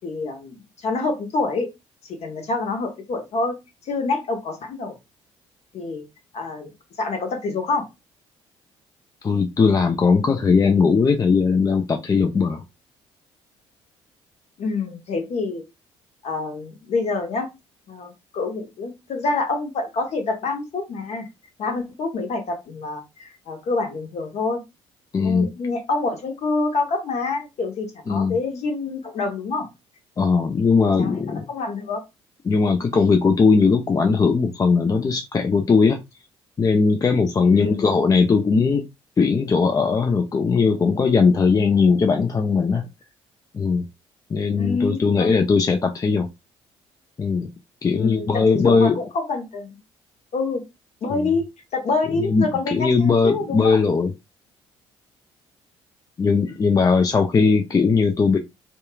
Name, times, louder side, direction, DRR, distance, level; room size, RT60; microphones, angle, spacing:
voice 1, 0.0-0.6 0.8-1.7 2.1-3.6 3.9-4.9 5.7-6.1 6.3-6.7 7.0-7.9 14.6-15.6 16.2-17.5 17.9-21.3 21.6-24.6 25.2-29.7 31.0-31.2 31.5-32.0 37.5-37.8 44.6-45.3 47.9-49.8 50.3-50.6 51.0-51.4 51.7-53.8, left 3 dB, 50° left, 1.0 m, -26 dB
voice 2, 9.2-12.6 25.1-25.5 28.1-28.4 30.2-31.5 32.5-36.0 36.6-38.9 39.2-42.9 43.5-43.8 44.3-46.3 47.2-47.5 47.8-49.0 51.2-51.3 52.1-52.4 52.7-54.1 56.2-58.4, left 5 dB, 25° left, 0.4 m, -19 dB
2.8 x 2.2 x 2.3 m
figure-of-eight pair, 50°, 14 cm